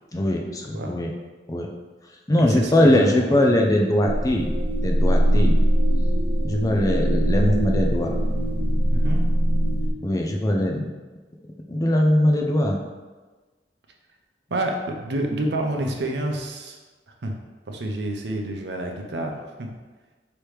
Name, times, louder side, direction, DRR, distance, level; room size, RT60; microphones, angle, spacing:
voice 1, 0.1-1.1 1.5-1.7 2.3-4.5 4.8-5.5 6.4-8.2 10.0-10.9 11.7-12.8, left 1 dB, 20° left, 1 dB, 0.4 m, -21 dB
voice 2, 2.4-3.6 8.9-9.3 14.5-16.8 17.2-17.3 17.7-19.7, right 1 dB, 70° right, 2 dB, 0.6 m, -29 dB
sound 1, 4.0-9.9, equal, 60° left, 1.1 m, -21 dB
5.0 x 3.0 x 3.2 m, 1.3 s
head